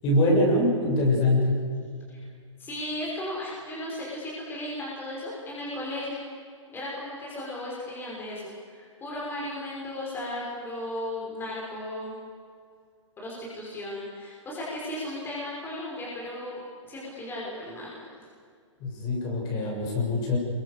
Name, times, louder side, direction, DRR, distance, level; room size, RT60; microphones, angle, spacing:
voice 1, 0.0-1.6 18.8-20.4, left 1 dB, 30° left, -1 dB, 7.0 m, -23 dB
voice 2, 2.6-6.3 6.7-12.1 13.2-18.1, left 1 dB, 15° left, -5 dB, 6.1 m, -35 dB
27.0 x 23.0 x 6.9 m, 2.2 s
hypercardioid pair, 135°, 16 cm